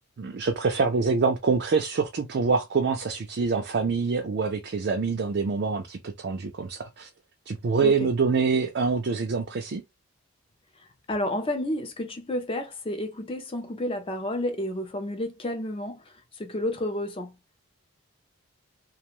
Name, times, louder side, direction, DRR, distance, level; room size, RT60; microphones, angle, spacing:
voice 1, 0.2-7.1 7.5-9.8, right 4 dB, 45° right, 0.4 m, -25 dB
voice 2, 10.8-17.3, left 1 dB, 25° left, 0.4 m, -31 dB
2.4 x 2.2 x 2.9 m
head